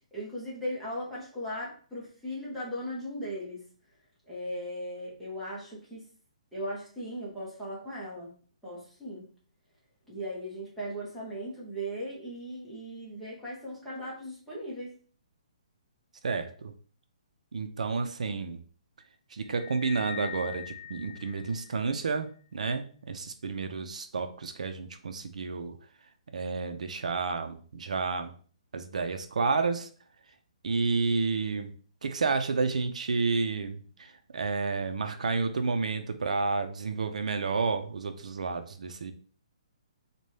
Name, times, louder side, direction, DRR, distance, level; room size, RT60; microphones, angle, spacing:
voice 1, 0.1-3.6 4.3-6.1 6.5-8.3 8.6-9.3 10.1-14.9, equal, ahead, -8 dB, 0.7 m, -38 dB
voice 2, 16.2-16.7 17.5-18.6 19.3-25.8 26.3-28.3 28.7-29.9 30.6-31.8 32.0-39.1, right 4 dB, 75° right, 8 dB, 0.5 m, -30 dB
sound 1, 19.5-22.1, left 12 dB, 65° left, 0.6 m, -43 dB
4.0 x 2.2 x 3.2 m, 0.43 s
hypercardioid pair, 180°, 4 cm